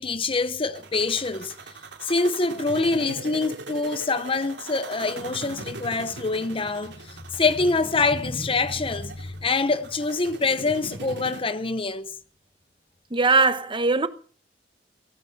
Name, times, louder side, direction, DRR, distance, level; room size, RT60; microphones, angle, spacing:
voice 1, 0.0-1.5 2.0-12.1, left 3 dB, 30° left, 0.9 m, -25 dB
sound 1, 0.8-11.4, right 2 dB, 85° right, 3.0 m, -40 dB
voice 2, 13.1-14.1, right 3 dB, 30° right, 1.1 m, -20 dB
16.5 x 14.0 x 5.7 m
head